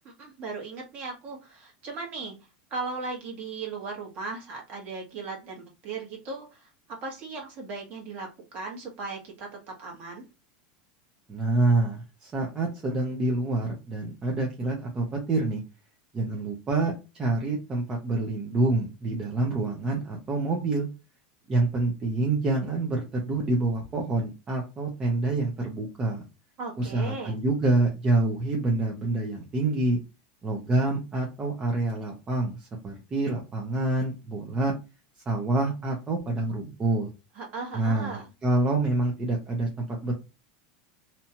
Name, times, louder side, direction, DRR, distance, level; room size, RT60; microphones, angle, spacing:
voice 1, 0.0-2.3 2.7-10.3 26.6-27.4 37.3-38.3, right 4 dB, 40° right, 0 dB, 1.2 m, -37 dB
voice 2, 11.3-15.6 16.1-20.9 21.5-26.2 26.8-30.0 30.4-34.7 35.3-37.1 37.7-40.1, right 2 dB, 20° right, -1 dB, 0.6 m, -27 dB
2.8 x 2.3 x 2.8 m, 0.27 s
supercardioid pair, 145°, 4 cm